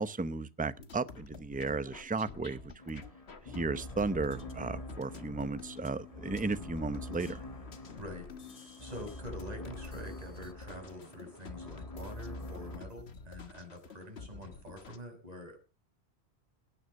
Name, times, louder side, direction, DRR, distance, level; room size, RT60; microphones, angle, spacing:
voice 1, 0.0-2.6 2.9-3.0 3.5-7.4, right 3 dB, 10° right, 0.6 m, -34 dB
sound 1, 0.6-15.0, left 5 dB, 75° left, 1.8 m, -50 dB
sound 2, 2.8-12.8, left 1 dB, 35° left, 1.7 m, -45 dB
voice 2, 8.0-8.3 8.8-15.6, equal, 35° right, 5.9 m, -46 dB
18.0 x 9.7 x 6.5 m
omnidirectional pair, 1.1 m